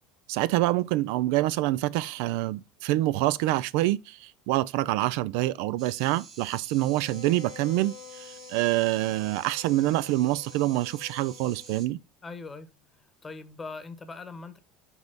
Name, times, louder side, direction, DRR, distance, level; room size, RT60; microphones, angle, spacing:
voice 1, 0.3-12.0, right 16 dB, 75° right, 0.4 m, -26 dB
sound 1, 5.8-11.9, right 6 dB, 55° right, 1.3 m, -49 dB
Bowed string instrument, 6.8-11.9, left 12 dB, 80° left, 1.1 m, -49 dB
voice 2, 12.2-12.7 13.2-14.6, left 4 dB, 20° left, 1.0 m, -40 dB
5.4 x 4.7 x 4.0 m
supercardioid pair, 115°, 0 cm